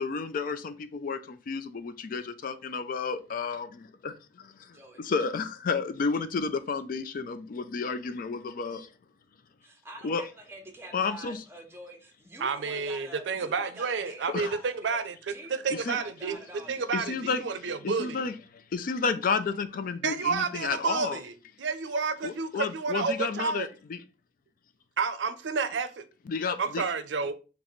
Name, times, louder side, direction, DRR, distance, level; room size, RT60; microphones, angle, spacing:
voice 1, 0.0-8.9 10.0-10.2 10.9-11.4 14.3-14.6 15.7-16.0 16.9-17.4 17.8-21.2 22.2-24.0 26.3-26.8, left 5 dB, 50° left, 0.4 m, -31 dB
voice 2, 9.6-15.0 15.3-17.0, right 1 dB, 15° right, 0.8 m, -47 dB
voice 3, 12.4-15.2 15.5-16.4 16.7-18.3 20.0-23.7 25.0-26.0 26.6-27.3, right 5 dB, 90° right, 0.5 m, -30 dB
3.1 x 2.9 x 4.0 m
head